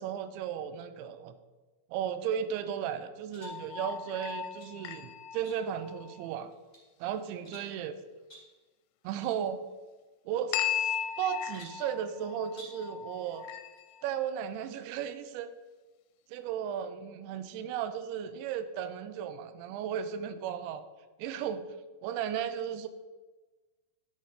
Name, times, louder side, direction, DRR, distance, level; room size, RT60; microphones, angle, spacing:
voice 1, 0.0-1.3 1.9-6.5 7.0-7.9 9.0-9.6 10.3-13.5 14.0-15.5 16.3-20.8 21.2-21.7 22.0-22.9, right 9 dB, 90° right, 11 dB, 3.0 m, -35 dB
sound 1, 3.3-3.6 4.3-4.8 5.4-5.9 6.4-6.9 7.4-7.8 8.3-8.6 9.2-9.4 9.6-9.7 10.6-11.2 11.5-11.9 12.5-12.9, right 1 dB, 10° left, 2.8 m, -53 dB
sound 2, 3.4-6.3 10.5-14.1, left 9 dB, 90° left, 2.9 m, -37 dB
11.0 x 7.7 x 5.0 m, 1.2 s
omnidirectional pair, 5.1 m